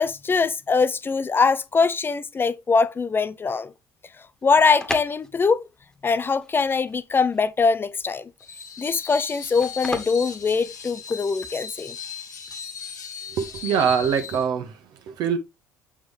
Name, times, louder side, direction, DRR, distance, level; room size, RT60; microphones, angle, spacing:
voice 1, 0.0-3.7 4.4-5.6 6.0-8.3 8.8-11.9, left 4 dB, 25° left, 0.7 m, -22 dB
sound 1, 4.3-11.3, left 1 dB, 5° left, 1.7 m, -37 dB
Screech, 8.4-14.4, left 7 dB, 80° left, 1.7 m, -37 dB
voice 2, 13.3-15.4, right 7 dB, 50° right, 1.3 m, -24 dB
8.0 x 4.9 x 3.4 m
figure-of-eight pair, 60°, 9 cm